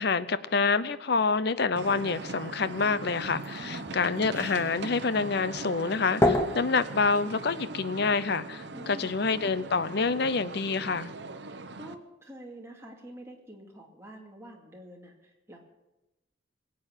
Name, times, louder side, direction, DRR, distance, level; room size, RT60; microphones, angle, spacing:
voice 1, 0.0-11.1, left 4 dB, 55° left, 15 dB, 0.7 m, -27 dB
sound 1, 1.7-11.9, right 3 dB, 60° right, 0.9 m, -40 dB
sound 2, 1.8-7.7, left 1 dB, 15° left, 1.2 m, -32 dB
voice 2, 3.5-4.0 8.7-9.2 11.4-15.6, right 1 dB, 15° right, 0 dB, 2.4 m, -47 dB
21.0 x 8.7 x 7.5 m, 1.0 s
head